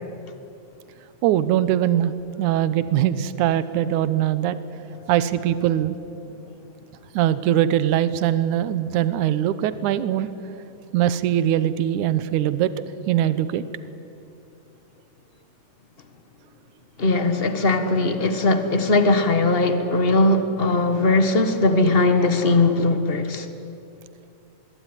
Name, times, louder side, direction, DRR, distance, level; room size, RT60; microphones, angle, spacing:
voice 1, 1.2-2.1 2.4-4.6 5.1-6.0 7.1-10.3 10.9-12.7 13.1-13.6, right 11 dB, 80° right, 14 dB, 2.3 m, -21 dB
voice 2, 17.0-23.5, left 2 dB, 45° left, 9 dB, 0.7 m, -19 dB
26.0 x 21.5 x 9.9 m, 2.6 s
omnidirectional pair, 3.5 m